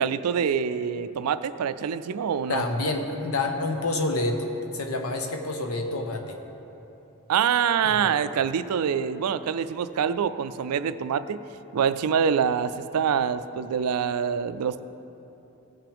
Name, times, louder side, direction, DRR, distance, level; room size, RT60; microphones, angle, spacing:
voice 1, 0.0-2.6 7.3-11.4 11.7-14.8, right 7 dB, 90° right, 13 dB, 0.4 m, -25 dB
voice 2, 2.5-6.4 7.8-8.1, left 2 dB, 75° left, 3 dB, 1.0 m, -28 dB
16.5 x 5.9 x 3.5 m, 3.0 s
head